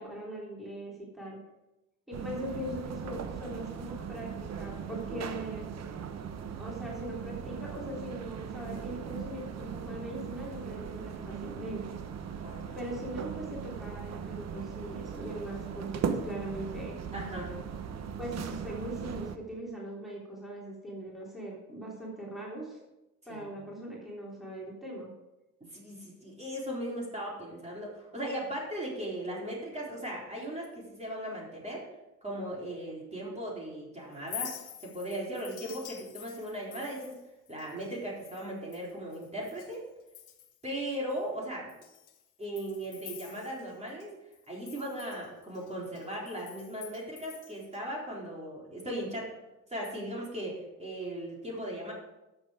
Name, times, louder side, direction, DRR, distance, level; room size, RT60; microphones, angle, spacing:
voice 1, 0.0-1.4 2.1-5.7 6.6-11.8 12.7-17.0 18.2-22.8 23.3-25.1, right 1 dB, ahead, -5 dB, 3.6 m, -40 dB
sound 1, 2.1-19.4, right 7 dB, 60° right, 1.0 m, -39 dB
voice 2, 12.4-12.8 17.1-17.5 23.3-23.5 25.7-31.8 32.2-34.5 34.8-37.1 37.5-39.8 40.6-41.7 42.4-44.1 44.5-49.3 49.7-51.9, right 1 dB, 20° right, -4 dB, 3.9 m, -38 dB
Chink clink, 34.1-39.8 40.1-40.7 41.1-41.2 41.7-44.1 44.3-47.8, left 10 dB, 85° left, 1.5 m, -47 dB
12.5 x 7.2 x 4.9 m, 0.98 s
cardioid pair, 90°, 30 cm